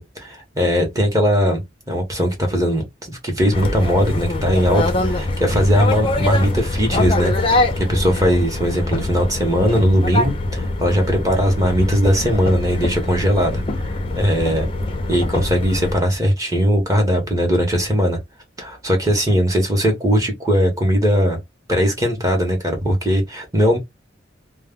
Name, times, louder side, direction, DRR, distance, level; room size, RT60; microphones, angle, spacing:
voice 1, 0.0-1.6 1.9-13.6 14.1-14.7 15.1-18.2 18.6-21.4 21.7-23.8, equal, 20° right, 0.8 m, -19 dB
sound 1, 3.5-15.9, left 2 dB, 25° left, 0.5 m, -23 dB
2.2 x 2.1 x 3.5 m
head